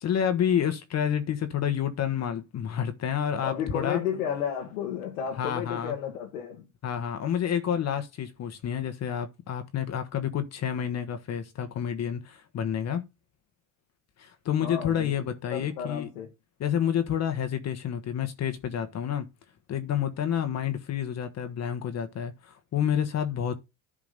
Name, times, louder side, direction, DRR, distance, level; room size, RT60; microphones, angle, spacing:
voice 1, 0.0-4.0 5.4-5.9 6.8-13.0 14.2-16.1 16.6-19.3 19.7-23.5, left 9 dB, 40° left, 1.2 m, -29 dB
voice 2, 3.4-6.7 14.6-15.1 15.5-16.3, left 8 dB, 85° left, 1.8 m, -32 dB
11.0 x 3.8 x 5.1 m
supercardioid pair, 90°, 40 cm